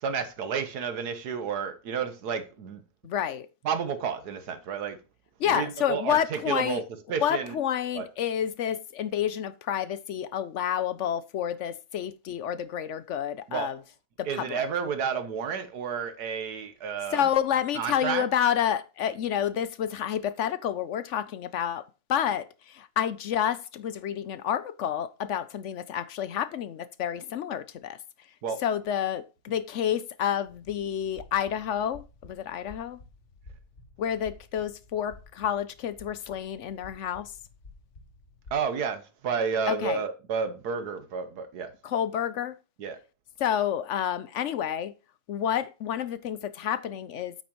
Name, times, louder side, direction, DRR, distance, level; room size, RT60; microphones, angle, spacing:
voice 1, 0.0-2.8 3.6-5.0 5.5-6.8 7.1-7.6 7.9-8.1 13.5-13.7 14.2-17.3 17.7-18.2 28.4-28.6 38.5-41.7 42.8-43.0, right 6 dB, 85° right, 1.6 m, -31 dB
voice 2, 3.0-3.5 5.4-6.8 7.2-13.8 14.2-14.6 17.1-21.8 22.1-28.0 28.6-33.0 34.0-37.3 39.7-40.0 41.8-42.5 43.4-44.9 45.3-47.4, left 9 dB, 65° left, 0.8 m, -29 dB
sound 1, 30.5-38.6, left 3 dB, 45° left, 2.1 m, -52 dB
8.5 x 8.5 x 3.0 m
omnidirectional pair, 1.6 m